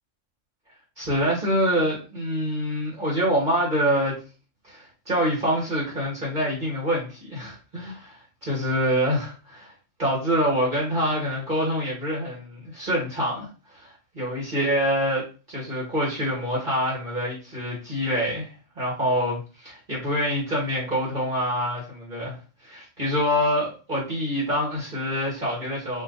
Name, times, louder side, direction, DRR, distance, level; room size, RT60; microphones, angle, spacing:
voice 1, 1.0-4.2 4.6-8.2 8.5-9.7 10.0-13.5 13.7-18.5 18.8-22.4 22.6-26.0, equal, 40° right, -6 dB, 2.0 m, -26 dB
5.3 x 2.6 x 3.9 m, 0.34 s
omnidirectional pair, 1.3 m